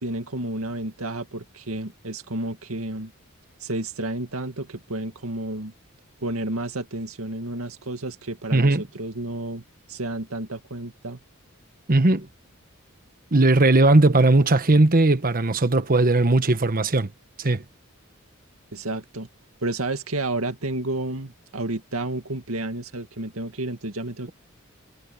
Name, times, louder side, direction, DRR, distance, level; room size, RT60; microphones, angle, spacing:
voice 1, 0.0-3.1 3.6-5.7 6.2-9.6 9.9-11.2 18.7-19.3 19.6-24.3, right 2 dB, 85° right, 2.2 m, -31 dB
voice 2, 8.5-8.8 11.9-12.3 13.3-17.1 17.4-17.6, right 2 dB, 45° right, 1.3 m, -18 dB
head